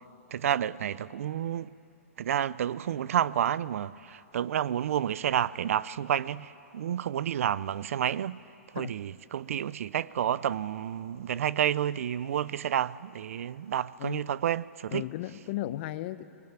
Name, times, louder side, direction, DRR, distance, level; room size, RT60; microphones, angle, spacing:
voice 1, 0.3-1.7 2.2-8.4 8.7-15.1, right 10 dB, 65° right, 0.5 m, -30 dB
voice 2, 14.9-16.2, left 15 dB, 45° left, 0.8 m, -35 dB
21.0 x 19.0 x 8.8 m
hypercardioid pair, 140°, 8 cm